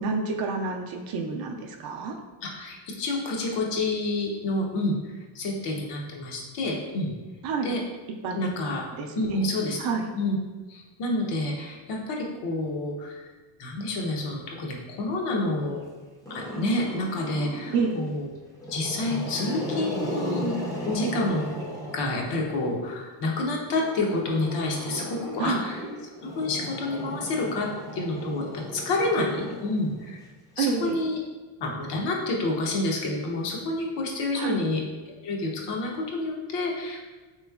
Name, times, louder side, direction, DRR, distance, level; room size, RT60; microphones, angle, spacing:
voice 1, 0.0-2.2 7.4-7.7 8.2-8.4 8.9-9.4 9.8-10.1 17.7-18.0 25.4-25.6 30.6-31.0 34.3-34.6, right 4 dB, 50° right, 2 dB, 0.5 m, -29 dB
voice 2, 2.4-7.1 7.6-7.8 8.4-8.8 9.1-9.8 10.2-10.4 10.7-13.2 13.6-15.8 16.3-18.3 18.7-20.6 20.9-21.5 21.9-25.8 26.2-30.2 30.6-31.2 31.6-37.0, left 2 dB, 60° left, 0 dB, 0.8 m, -29 dB
Growling, 16.2-18.0 18.5-22.7 23.7-30.2, equal, 10° left, 0.5 m, -35 dB
3.5 x 3.0 x 2.3 m, 1.3 s
cardioid pair, 125°, 47 cm